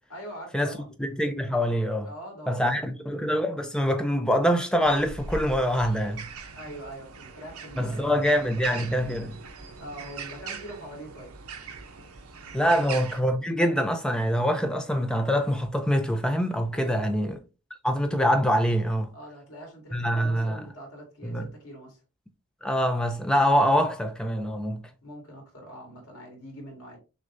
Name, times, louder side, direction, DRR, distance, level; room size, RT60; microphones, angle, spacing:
voice 1, 0.1-0.9 2.0-3.1 6.5-8.2 9.8-11.3 16.7-17.1 19.1-22.0 25.0-27.0, right 1 dB, 85° left, 2.1 m, -43 dB
voice 2, 1.0-2.1 2.5-6.3 7.8-9.4 12.5-17.4 17.8-19.1 19.9-20.6 21.2-21.5 22.6-24.8, equal, 5° left, 0.5 m, -25 dB
sound 1, 4.8-13.2, right 4 dB, 80° right, 0.8 m, -41 dB
6.2 x 2.3 x 2.6 m
head